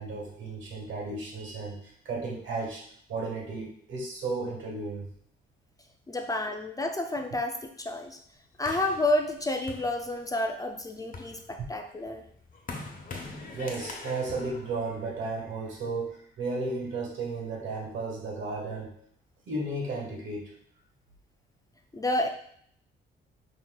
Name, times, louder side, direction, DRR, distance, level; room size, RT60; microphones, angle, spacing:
voice 1, 0.0-5.1 13.5-18.9 19.5-20.5, right 3 dB, 70° right, -1 dB, 1.4 m, -34 dB
voice 2, 6.1-8.2 8.6-12.2 21.9-22.3, left 1 dB, 20° left, 4 dB, 0.4 m, -30 dB
sound 1, 8.6-10.5 10.9-15.6, left 3 dB, 45° left, 0.9 m, -43 dB
5.6 x 2.9 x 2.2 m, 0.64 s
cardioid pair, 90°, 20 cm